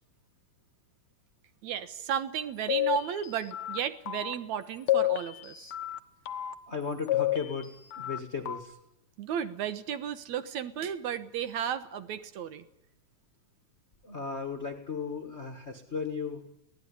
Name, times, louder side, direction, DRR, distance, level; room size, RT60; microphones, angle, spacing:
voice 1, 1.6-5.7 9.2-12.6, right 9 dB, 65° right, 11 dB, 2.3 m, -34 dB
sound 1, 2.7-3.8 4.1-4.3 4.9-6.0 6.3-6.5 7.1-8.2 8.5-8.6, left 14 dB, 65° left, 1.3 m, -30 dB
voice 2, 6.7-7.7 8.0-8.8 14.0-16.5, left 5 dB, 30° left, 6 dB, 1.4 m, -35 dB
23.5 x 18.0 x 10.0 m, 0.83 s
omnidirectional pair, 3.8 m